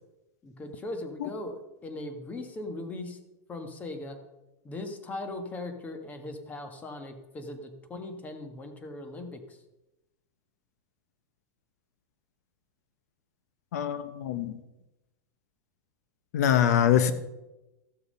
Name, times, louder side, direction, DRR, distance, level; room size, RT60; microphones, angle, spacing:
voice 1, 0.4-3.2 3.5-4.2 4.6-9.6, left 2 dB, 20° left, 6 dB, 1.5 m, -39 dB
voice 2, 13.7-14.6 16.3-17.1, left 9 dB, 75° left, 12 dB, 0.9 m, -24 dB
14.5 x 6.9 x 5.5 m, 0.98 s
supercardioid pair, 140°, 9 cm